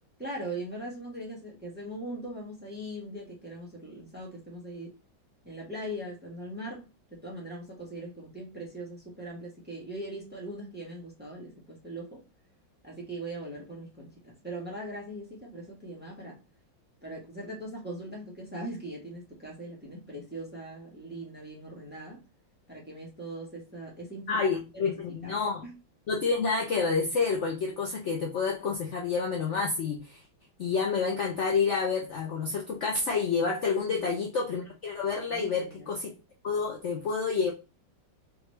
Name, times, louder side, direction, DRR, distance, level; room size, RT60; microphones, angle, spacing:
voice 1, 0.2-5.0 5.4-6.8 7.1-12.2 12.8-16.4 17.0-22.2 22.7-24.9 25.2-25.7 33.8-34.2 35.3-35.9, right 1 dB, 5° right, -3 dB, 1.2 m, -40 dB
voice 2, 24.3-25.6 26.1-30.2 30.6-36.1 36.4-37.5, left 5 dB, 70° left, 0 dB, 0.6 m, -29 dB
3.6 x 3.2 x 3.2 m, 0.29 s
omnidirectional pair, 2.1 m